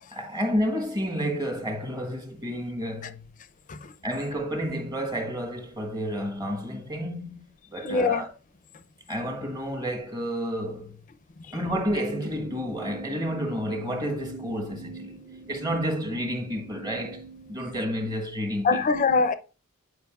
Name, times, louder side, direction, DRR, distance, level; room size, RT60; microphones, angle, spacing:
voice 1, 0.1-3.3 4.0-8.3 9.1-11.0 11.5-15.2 15.5-18.8, equal, 20° right, 1.2 m, -30 dB
voice 2, 7.8-8.2 11.5-11.6 18.6-19.3, left 4 dB, 35° left, 0.5 m, -24 dB
sound 1, 12.1-18.2, right 4 dB, 60° right, 1.5 m, -44 dB
9.3 x 5.1 x 2.4 m
head